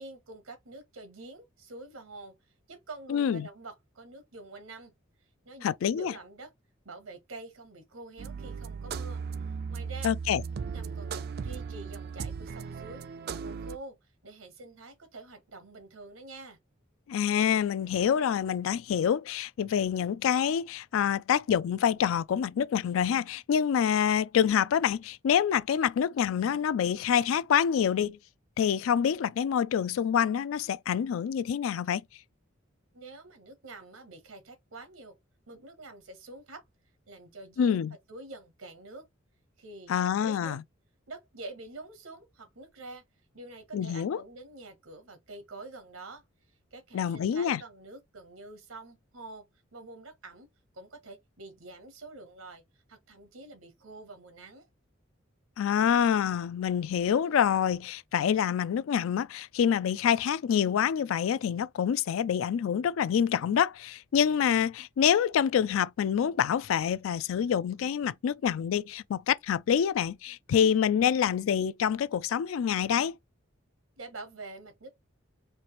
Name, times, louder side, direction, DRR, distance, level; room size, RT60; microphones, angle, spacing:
voice 1, 0.0-2.3 2.7-4.9 5.4-6.5 6.8-9.2 9.7-10.1 10.5-14.0 14.2-16.6 32.9-35.1 35.5-36.6 37.1-37.8 38.1-39.1 39.6-40.6 41.1-43.0 43.3-46.2 46.7-49.5 49.7-50.5 50.7-52.6 52.9-54.6 74.0-74.9, right 2 dB, 90° right, 1.0 m, -46 dB
voice 2, 3.1-3.5 5.6-6.1 10.0-10.4 17.1-28.2 28.6-32.0 37.6-37.9 39.9-40.6 43.7-44.2 46.9-47.6 55.6-73.2, left 8 dB, 80° left, 0.3 m, -26 dB
sound 1, 8.2-13.8, right 5 dB, 50° right, 0.3 m, -37 dB
4.4 x 2.5 x 3.0 m
head